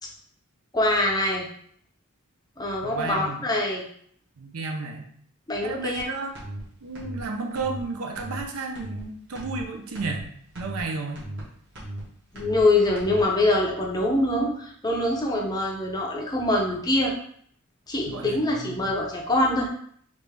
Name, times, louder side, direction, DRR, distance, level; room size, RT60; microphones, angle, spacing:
voice 1, 0.7-1.4 2.6-3.8 5.5-6.1 12.3-17.1 17.9-19.7, left 1 dB, 20° left, -1 dB, 0.5 m, -24 dB
voice 2, 2.8-3.4 4.4-5.1 5.6-6.3 6.8-10.3 10.6-11.3 18.1-19.0, right 3 dB, 75° right, 3 dB, 0.6 m, -32 dB
sound 1, 6.0-6.1 6.3-6.6 6.9-7.2 7.5-7.8 8.1-8.4 8.7-9.0 9.3-9.6 9.9-10.2 10.5-10.8 11.1-11.4 11.7-12.0 12.3-12.6 12.9-13.2, right 1 dB, 55° right, 1.2 m, -36 dB
3.4 x 2.6 x 3.3 m, 0.63 s
head